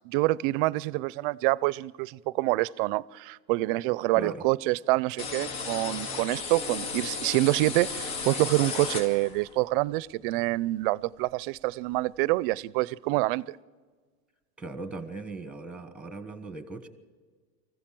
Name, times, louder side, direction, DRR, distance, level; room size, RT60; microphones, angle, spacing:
voice 1, 0.0-13.6, right 20 dB, 55° right, 0.5 m, -26 dB
voice 2, 4.1-4.4 14.6-16.9, right 3 dB, 5° right, 1.2 m, -39 dB
sound 1, 5.2-9.5, left 5 dB, 70° left, 2.9 m, -34 dB
24.0 x 15.0 x 7.6 m
supercardioid pair, 165°, 32 cm